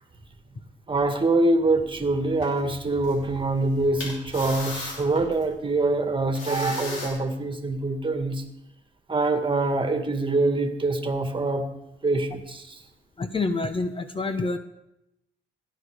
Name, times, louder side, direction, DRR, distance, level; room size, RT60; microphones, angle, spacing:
voice 1, 0.9-8.4 9.1-11.7 12.0-12.8, right 2 dB, 25° right, 7 dB, 2.0 m, -24 dB
sound 1, 2.4-2.6 3.0-3.1 4.0-5.4 6.4-7.1, left 3 dB, 80° left, 5.2 m, -35 dB
voice 2, 13.2-14.6, left 3 dB, 25° left, 10 dB, 0.9 m, -27 dB
17.0 x 11.5 x 5.0 m, 0.88 s
cardioid pair, 90°, 20 cm